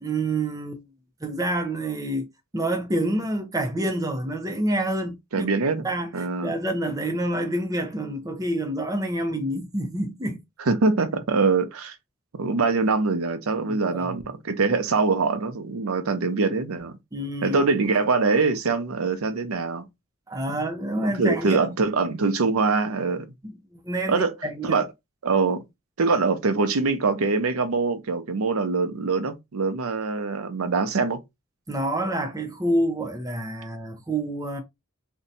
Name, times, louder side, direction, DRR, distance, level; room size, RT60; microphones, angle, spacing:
voice 1, 0.0-0.9 1.2-2.3 2.5-5.5 5.8-10.4 13.7-14.2 17.1-17.6 20.3-21.7 23.4-24.2 24.4-24.8 31.7-34.6, right 1 dB, 15° right, 0.5 m, -28 dB
voice 2, 5.3-5.9 6.1-6.6 10.7-12.0 12.3-17.0 17.4-19.9 21.0-23.3 24.1-24.3 24.6-24.9 25.2-25.6 26.0-31.2, right 4 dB, 85° right, 0.6 m, -23 dB
2.7 x 2.2 x 3.9 m
head